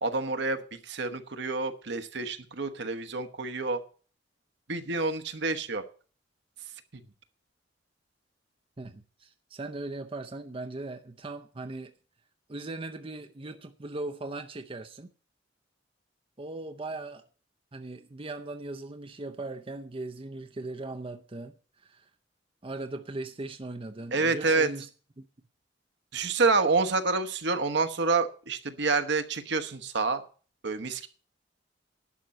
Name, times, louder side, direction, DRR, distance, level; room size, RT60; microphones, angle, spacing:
voice 1, 0.0-3.8 4.7-5.8 6.9-7.0 24.1-24.7 26.1-30.2 30.6-31.1, right 3 dB, 65° right, 1.1 m, -28 dB
voice 2, 8.8-11.9 12.5-15.1 16.4-17.2 17.7-22.1 22.6-24.9 25.2-25.3, right 2 dB, 30° right, 0.6 m, -39 dB
11.0 x 5.9 x 7.6 m
head